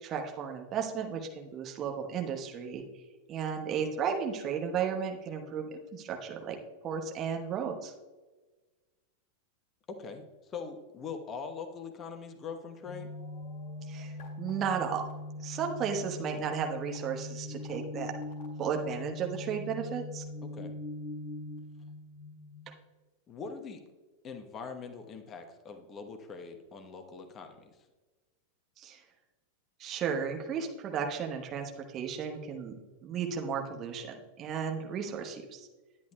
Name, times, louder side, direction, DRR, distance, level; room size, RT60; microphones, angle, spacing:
voice 1, 0.0-2.8 3.3-6.6 6.8-7.9 13.9-15.0 15.4-18.1 18.6-20.2 28.8-29.0 29.8-35.7, right 7 dB, 30° right, 3 dB, 1.0 m, -34 dB
voice 2, 9.9-13.1 20.5-20.8 23.3-23.8 24.2-27.7, left 5 dB, 25° left, 5 dB, 0.9 m, -42 dB
sound 1, 12.8-22.7, left 2 dB, 45° left, 2.1 m, -41 dB
10.5 x 9.6 x 2.2 m, 1.2 s
figure-of-eight pair, 90°, 0 cm